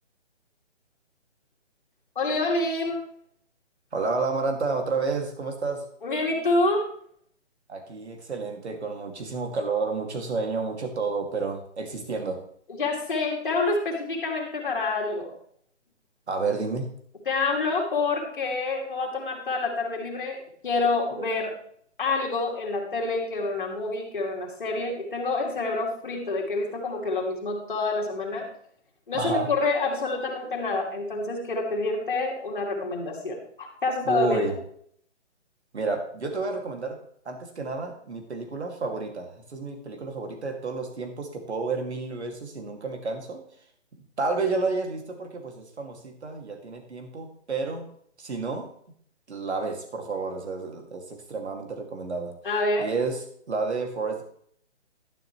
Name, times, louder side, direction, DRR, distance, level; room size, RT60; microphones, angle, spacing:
voice 1, 2.2-3.0 6.0-6.9 12.7-15.3 17.3-21.5 22.0-28.5 29.1-34.5 52.4-52.9, left 3 dB, 45° left, -1 dB, 2.7 m, -27 dB
voice 2, 3.9-5.8 7.7-12.4 16.3-16.9 21.1-21.3 29.1-29.5 34.0-34.6 35.7-37.0 37.2-43.4 44.2-47.9 48.2-48.7 49.3-52.3 52.8-54.2, right 3 dB, 65° right, 4 dB, 2.5 m, -30 dB
12.0 x 10.0 x 3.2 m, 0.64 s
hypercardioid pair, 175°, 36 cm